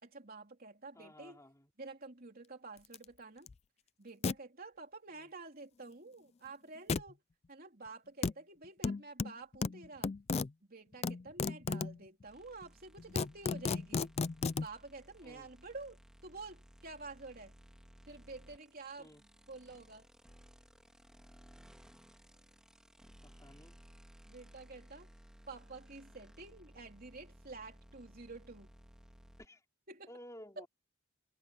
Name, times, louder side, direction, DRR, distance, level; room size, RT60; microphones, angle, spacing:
voice 1, 0.0-1.4 1.8-3.5 4.0-7.2 7.5-10.1 10.7-14.1 14.5-17.5 18.1-20.1 24.3-25.1 25.5-28.7 29.9-30.1 30.6-30.7, right 3 dB, 40° right, 3.3 m, -50 dB
voice 2, 0.9-1.7 5.1-5.3 15.2-15.5 19.0-19.2 23.2-23.8 29.4-29.6 30.1-30.7, equal, 15° left, 4.4 m, -54 dB
sound 1, 2.9-3.0 3.5-3.6 4.2-4.3 6.9-7.1 8.2-8.3 8.8-10.5 11.0-12.0 12.6-12.7 13.0-14.7, left 4 dB, 30° left, 0.3 m, -34 dB
sound 2, 12.3-29.5, equal, 5° right, 1.9 m, -59 dB
head